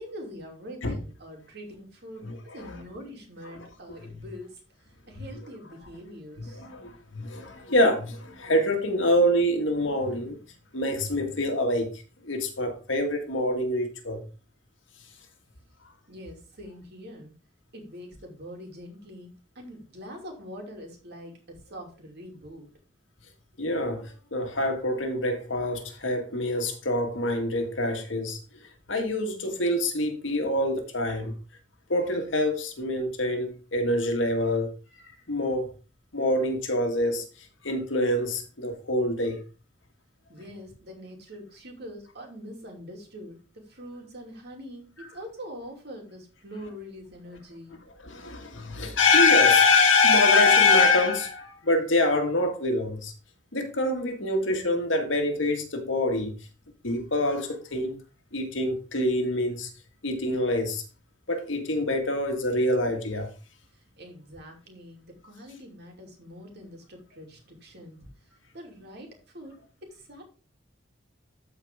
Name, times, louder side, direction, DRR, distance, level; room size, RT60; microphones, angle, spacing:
voice 1, 0.0-4.6 5.1-6.6 16.1-17.3 17.7-22.7 40.3-47.8 63.7-68.0 68.5-70.2, equal, 60° right, 2.8 m, -44 dB
voice 2, 2.2-2.8 3.6-3.7 4.1-4.2 5.2-5.3 6.4-10.4 10.7-14.2 23.6-28.4 28.9-31.3 31.9-34.7 35.3-35.7 36.1-37.2 37.6-39.4 48.0-53.1 53.5-56.3 56.8-58.0 58.3-59.7 60.0-60.8 61.3-63.3, left 2 dB, 75° left, 1.8 m, -25 dB
13.5 x 4.6 x 3.6 m
head